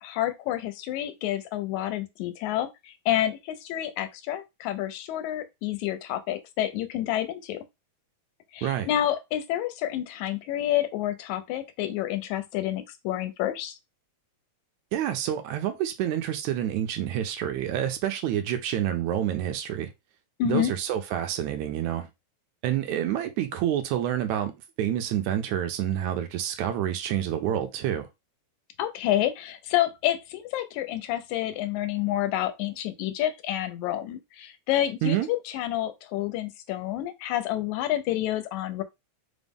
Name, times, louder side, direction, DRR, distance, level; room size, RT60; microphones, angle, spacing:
voice 1, 0.0-7.6 8.5-13.8 20.4-20.7 28.8-38.8, left 13 dB, 80° left, 1.9 m, -29 dB
voice 2, 14.9-19.9 20.4-22.1 22.6-24.5 24.8-28.1 35.0-35.3, right 11 dB, 80° right, 1.9 m, -28 dB
5.0 x 2.1 x 3.4 m
omnidirectional pair, 3.4 m